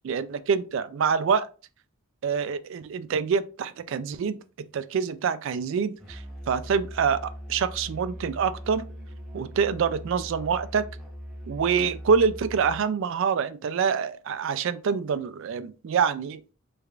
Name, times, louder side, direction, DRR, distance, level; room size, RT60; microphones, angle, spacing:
voice 1, 0.0-1.5 2.2-4.4 4.7-8.9 9.3-10.9 11.5-16.4, right 6 dB, 55° right, 0.3 m, -26 dB
Musical instrument, 6.0-12.9, equal, ahead, 0.7 m, -40 dB
3.4 x 2.4 x 3.2 m
head